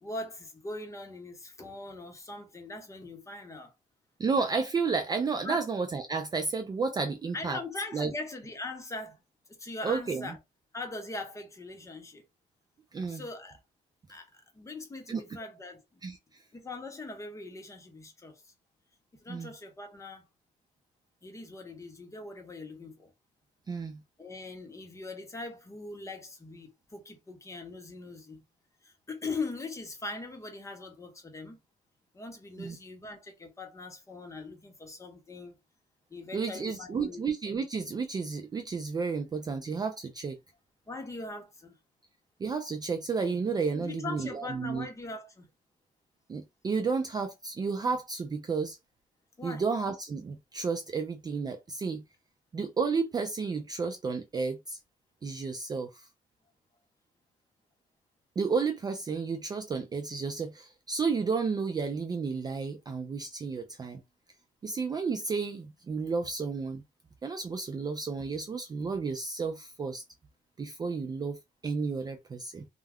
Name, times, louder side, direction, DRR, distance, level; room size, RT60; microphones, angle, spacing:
voice 1, 0.0-3.7 5.4-5.6 7.3-9.2 9.5-10.4 10.7-12.2 13.1-13.6 14.1-16.0 16.5-18.5 19.2-20.3 21.2-23.1 24.2-28.4 28.8-31.6 32.1-35.5 36.1-37.2 40.9-41.8 43.7-45.5 49.4-49.6, left 2 dB, 20° left, 0.8 m, -41 dB
voice 2, 4.2-7.6 7.9-8.1 9.8-10.3 12.9-13.2 15.1-15.2 16.0-16.2 19.3-19.5 23.7-24.0 32.6-32.8 36.3-40.4 42.4-44.9 46.3-48.8 49.4-52.0 52.5-54.8 55.2-56.1 58.4-64.0 64.6-66.8 67.2-70.0 70.6-71.4 71.6-72.7, right 5 dB, 25° right, 0.4 m, -32 dB
2.3 x 2.2 x 3.4 m
cardioid pair, 110°, 17 cm